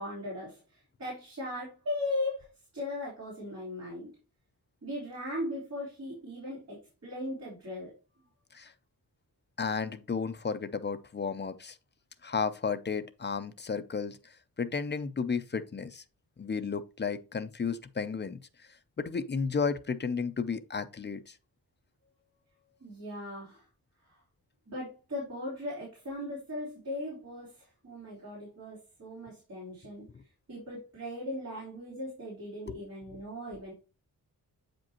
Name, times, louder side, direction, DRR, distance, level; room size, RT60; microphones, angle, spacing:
voice 1, 0.0-2.5 2.7-4.1 4.8-7.9 22.8-23.6 24.7-30.1 30.5-33.7, left 1 dB, 45° right, 3.6 m, -38 dB
voice 2, 9.6-11.8 12.2-14.2 14.6-16.0 16.4-18.4 19.0-21.3 32.7-32.8, left 5 dB, 30° left, 0.5 m, -33 dB
8.3 x 5.2 x 2.9 m
wide cardioid pair, 145°, 36 cm